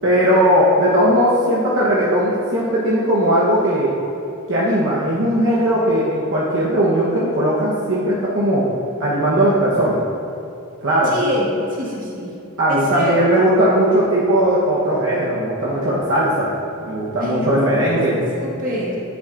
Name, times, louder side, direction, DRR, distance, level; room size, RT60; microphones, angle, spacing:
voice 1, 0.0-3.9 4.5-8.6 9.0-10.0 10.8-11.1 12.6-16.6 16.8-18.2, right 1 dB, 60° right, -7 dB, 1.1 m, -18 dB
voice 2, 11.1-11.5 11.8-12.3 12.7-13.5 17.2-17.5 17.7-19.0, left 1 dB, 40° right, -5 dB, 1.7 m, -26 dB
9.6 x 8.9 x 2.6 m, 2.7 s
head